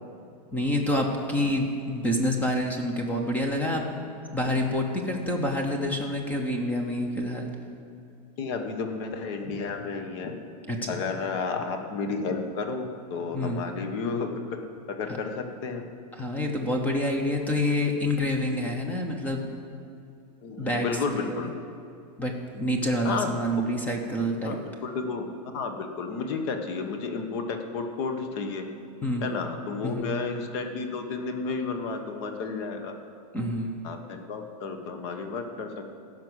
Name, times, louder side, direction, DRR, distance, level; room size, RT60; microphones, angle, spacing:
voice 1, 0.5-3.8 4.3-7.5 10.7-11.0 13.3-13.7 16.2-19.5 20.6-20.9 21.2-21.5 22.2-24.6 29.0-29.3 29.8-30.2 33.3-33.8, left 1 dB, 10° left, 3 dB, 0.8 m, -27 dB
voice 2, 8.4-10.3 10.9-14.3 14.9-15.9 20.4-21.5 23.0-23.3 24.4-28.7 29.2-32.9 33.8-36.0, left 4 dB, 40° left, 6 dB, 1.2 m, -32 dB
15.5 x 6.1 x 8.0 m, 2.4 s
supercardioid pair, 170°, 21 cm